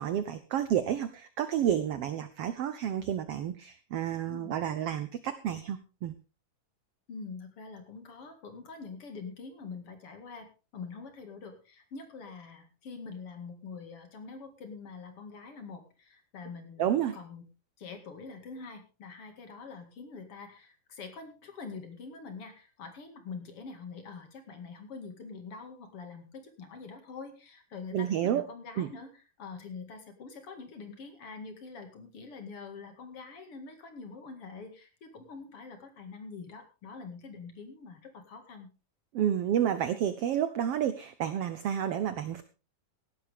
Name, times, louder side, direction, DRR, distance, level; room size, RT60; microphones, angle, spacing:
voice 1, 0.0-6.1 16.8-17.2 27.9-28.4 28.8-28.9 39.1-42.4, right 10 dB, 80° right, 12 dB, 1.3 m, -30 dB
voice 2, 4.2-4.6 7.1-17.5 17.8-38.7, left 4 dB, 45° left, 6 dB, 2.7 m, -45 dB
17.0 x 12.0 x 3.5 m, 0.32 s
omnidirectional pair, 3.8 m